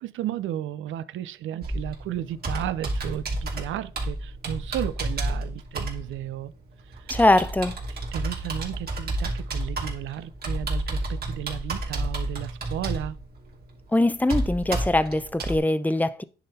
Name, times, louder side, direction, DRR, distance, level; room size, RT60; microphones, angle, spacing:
voice 1, 0.0-6.5 6.9-7.2 8.1-13.2, right 12 dB, 75° right, 0.6 m, -33 dB
Computer keyboard, 1.6-15.6, right 2 dB, 50° right, 2.8 m, -31 dB
voice 2, 7.1-7.8 13.9-16.2, left 1 dB, 10° left, 0.6 m, -22 dB
9.9 x 3.8 x 4.2 m
cardioid pair, 90°, 20 cm